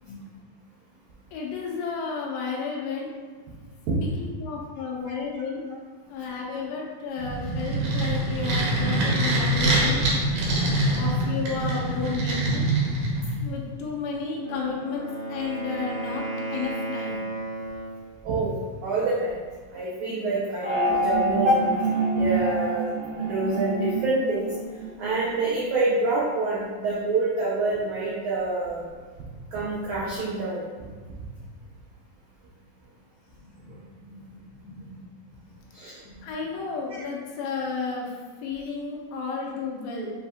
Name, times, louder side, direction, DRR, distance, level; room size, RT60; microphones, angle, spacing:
voice 1, 1.3-3.1 4.0-5.6 6.1-10.1 11.0-12.7 13.4-17.2 33.6-35.1 36.2-38.1 38.4-40.1, left 4 dB, 85° left, -2 dB, 2.4 m, -33 dB
sound 1, 7.2-13.5, right 1 dB, 70° right, 1.9 m, -24 dB
Wind instrument woodwind instrument, 14.3-18.1, right 1 dB, 65° left, 2.4 m, -33 dB
voice 2, 18.2-18.6 18.8-19.3 19.7-21.7 22.1-22.8 23.2-24.5 25.0-28.9 29.5-30.6 35.7-35.9 36.9-37.0, right 2 dB, 85° right, -6 dB, 1.6 m, -26 dB
sound 2, 20.6-25.2, right 2 dB, 50° left, 1.0 m, -27 dB
7.0 x 2.8 x 2.3 m, 1.4 s
omnidirectional pair, 4.2 m